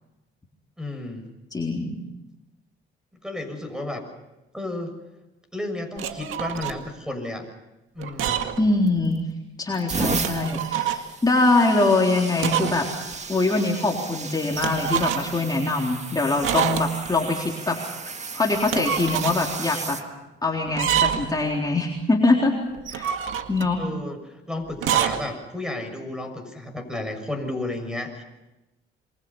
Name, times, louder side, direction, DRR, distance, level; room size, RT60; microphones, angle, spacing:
voice 1, 0.8-1.3 3.2-4.0 4.5-5.0 5.5-7.5 7.9-8.5 23.8-28.2, left 2 dB, 5° right, 7 dB, 6.8 m, -32 dB
voice 2, 1.5-1.9 8.6-9.2 9.6-12.9 13.3-17.8 18.2-20.0 20.4-22.5 22.9-23.1 23.5-23.8, left 2 dB, 20° left, -1 dB, 3.8 m, -23 dB
sound 1, 6.0-6.8 8.0-8.7 9.0-9.1 10.0-11.1 12.4-12.8 13.1-13.2 14.6-15.4 16.4-17.1 18.5-19.4 20.7-21.4 22.7-23.7 24.7-25.2, right 9 dB, 85° right, 2.0 m, -26 dB
sound 2, 8.9-9.2 9.7-20.0 20.9-21.2 22.7-22.9, right 4 dB, 35° right, 1.9 m, -34 dB
28.0 x 24.0 x 5.6 m, 1.0 s
cardioid pair, 90°, 20 cm